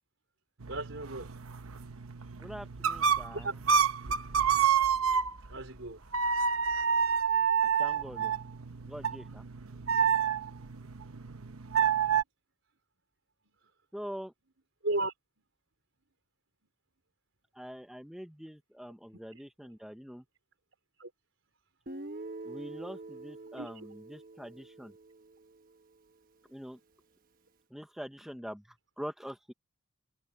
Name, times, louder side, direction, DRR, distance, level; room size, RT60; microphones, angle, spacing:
sound 1, 0.6-5.6 6.1-12.2, right 7 dB, 90° right, 1.0 m, -29 dB
voice 1, 0.7-1.3 3.3-3.5 4.0-4.2 5.5-6.0 13.4-13.5 14.8-15.1 21.0-21.1 23.5-23.9, right 2 dB, 65° right, 4.7 m, -35 dB
voice 2, 2.4-3.5 7.8-8.3 8.9-9.4 13.9-14.3 17.5-20.2 22.4-24.9 26.5-26.8 27.7-29.5, equal, ahead, 0.7 m, -44 dB
Guitar, 21.9-25.8, right 2 dB, 40° right, 1.3 m, -45 dB
open air
head